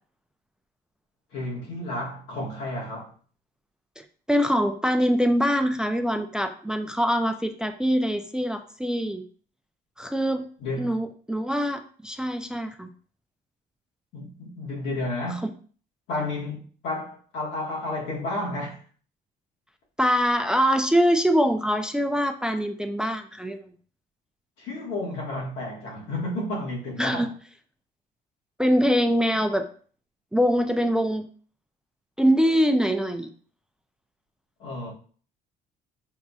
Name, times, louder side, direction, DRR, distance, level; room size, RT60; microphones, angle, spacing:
voice 1, 1.3-3.1 10.6-11.0 14.1-15.5 16.1-18.8 24.6-27.3 34.6-34.9, left 2 dB, 90° left, 1.5 m, -31 dB
voice 2, 4.0-9.2 10.0-10.5 10.8-12.9 15.3-15.4 20.0-23.6 27.0-27.3 28.6-29.7 30.3-31.3 32.2-33.3, equal, 5° right, 0.3 m, -23 dB
6.1 x 2.6 x 2.4 m
cardioid pair, 110°, 17 cm